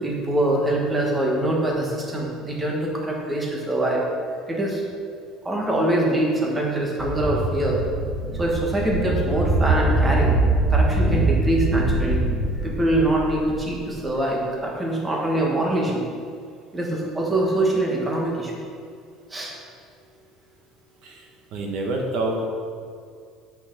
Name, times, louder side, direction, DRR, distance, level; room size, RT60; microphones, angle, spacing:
voice 1, 0.0-4.0 4.5-4.8 5.4-7.8 8.3-10.4 10.7-12.2 12.6-16.0 16.7-18.5 19.3-19.5, right 1 dB, 10° right, -2 dB, 1.3 m, -24 dB
sound 1, 7.0-14.1, right 2 dB, 70° right, 2.3 m, -23 dB
voice 2, 21.0-22.5, right 2 dB, 55° right, 1 dB, 1.2 m, -28 dB
8.2 x 6.1 x 6.5 m, 2.2 s
cardioid pair, 170°, 0 cm